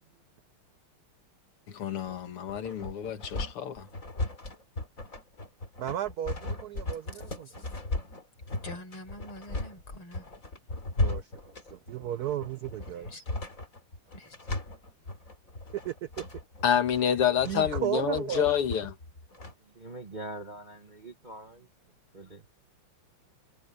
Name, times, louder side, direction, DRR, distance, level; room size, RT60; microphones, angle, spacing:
voice 1, 1.7-3.9 16.6-18.9, left 9 dB, 90° left, 2.6 m, -28 dB
sound 1, 2.0-19.5, left 2 dB, 35° left, 3.9 m, -36 dB
voice 2, 5.8-7.5 11.0-13.1 15.7-16.2 17.5-18.5, right 11 dB, 85° right, 0.8 m, -34 dB
voice 3, 7.1-7.7 8.6-10.4 12.9-13.3 14.1-14.5, left 1 dB, 70° left, 6.8 m, -46 dB
voice 4, 19.6-21.7 22.1-22.5, right 1 dB, 30° right, 0.8 m, -43 dB
omnidirectional pair, 2.4 m